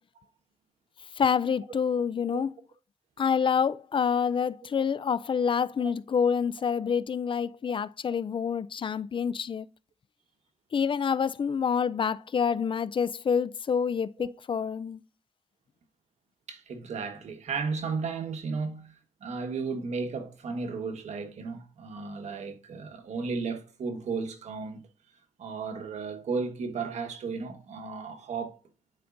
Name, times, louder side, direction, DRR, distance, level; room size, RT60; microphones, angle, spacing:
voice 1, 1.2-2.5 3.2-9.7 10.7-15.0, left 6 dB, 45° left, 0.4 m, -27 dB
voice 2, 16.5-18.9 19.2-24.8 25.4-28.6, right 4 dB, 80° right, 1.4 m, -34 dB
10.5 x 5.0 x 2.6 m
cardioid pair, 60°, 12 cm